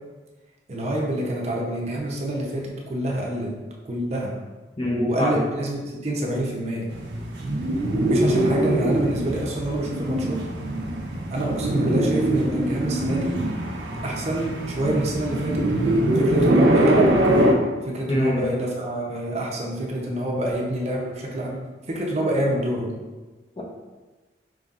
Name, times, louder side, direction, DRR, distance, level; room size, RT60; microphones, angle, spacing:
voice 1, 0.7-3.5 3.8-4.3 4.8-6.9 8.1-10.4 11.3-13.4 14.0-17.5 17.8-21.6 21.9-22.9, right 1 dB, 40° right, -2 dB, 0.7 m, -27 dB
voice 2, 4.8-5.4 18.1-18.4 23.6-23.7, equal, 30° left, -2 dB, 0.6 m, -24 dB
sound 1, 6.9-17.5, right 1 dB, 85° right, 0.7 m, -22 dB
5.3 x 3.1 x 2.4 m, 1.2 s
head